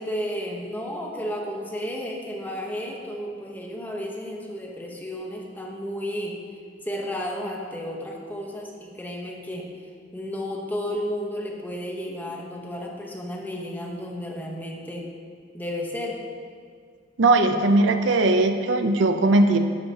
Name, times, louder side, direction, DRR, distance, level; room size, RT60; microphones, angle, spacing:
voice 1, 0.0-6.4 6.8-9.7 10.1-15.1 15.5-16.2, equal, 10° left, -1 dB, 0.9 m, -32 dB
voice 2, 17.2-19.6, right 2 dB, 70° right, 7 dB, 0.6 m, -19 dB
11.5 x 6.8 x 2.9 m, 2.1 s
head